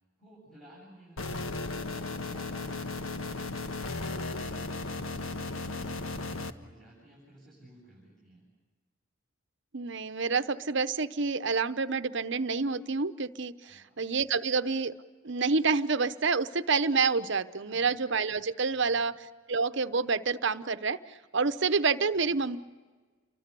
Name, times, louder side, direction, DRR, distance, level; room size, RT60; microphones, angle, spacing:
voice 1, 0.2-8.5 13.6-14.0 17.6-18.0 18.7-19.1 22.1-22.4, right 1 dB, ahead, -5 dB, 7.7 m, -55 dB
sound 1, 1.2-6.5, left 3 dB, 90° left, 1.4 m, -35 dB
voice 2, 9.7-14.9 15.2-19.1 19.5-22.6, right 4 dB, 60° right, 12 dB, 0.9 m, -28 dB
29.0 x 24.0 x 6.8 m, 1.4 s
head